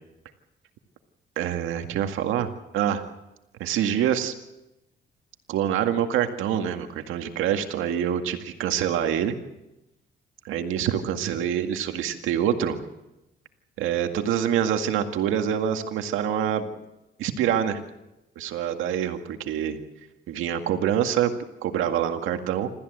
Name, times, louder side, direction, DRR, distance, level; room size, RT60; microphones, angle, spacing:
voice 1, 1.4-3.0 3.6-4.3 5.5-9.4 10.4-12.8 13.8-16.7 17.2-17.8 18.4-19.8 20.3-21.3 21.6-22.7, right 9 dB, 90° right, 6 dB, 2.0 m, -26 dB
27.5 x 14.0 x 8.0 m, 0.96 s
cardioid pair, 90°, 20 cm